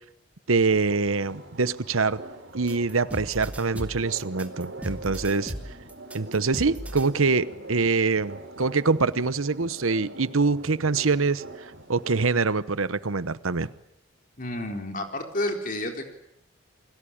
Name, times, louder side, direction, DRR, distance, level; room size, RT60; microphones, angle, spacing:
voice 1, 0.5-2.2 2.5-5.7 6.1-13.7, right 4 dB, 80° right, 15 dB, 1.0 m, -25 dB
sound 1, 0.7-12.2, right 1 dB, 60° right, 3.6 m, -43 dB
sound 2, 2.7-7.1, equal, 5° right, 2.5 m, -36 dB
voice 2, 14.4-16.0, left 1 dB, 40° left, 5 dB, 4.0 m, -30 dB
29.0 x 22.0 x 8.8 m, 0.79 s
head